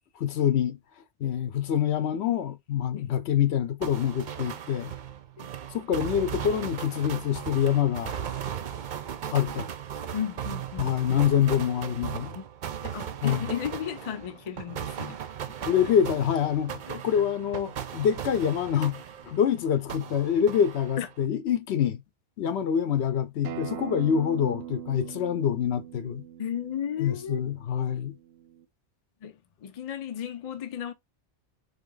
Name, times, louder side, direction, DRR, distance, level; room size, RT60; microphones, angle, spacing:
voice 1, 0.2-0.8 1.2-4.9 5.7-8.2 9.3-9.7 10.8-12.4 13.2-13.5 15.7-22.0 22.4-26.2 27.0-28.1, left 9 dB, 75° left, 0.9 m, -26 dB
sound 1, 3.8-19.5 19.9-21.2, right 9 dB, 55° right, 0.6 m, -37 dB
voice 2, 10.1-11.2 12.4-12.5 12.8-15.2 15.5-15.7 16.9-17.2 21.0-21.1 26.4-27.4 29.2-30.9, left 9 dB, 45° left, 0.5 m, -35 dB
Acoustic guitar, 23.4-28.6, right 11 dB, 90° right, 0.9 m, -41 dB
3.6 x 3.4 x 3.8 m
omnidirectional pair, 1.1 m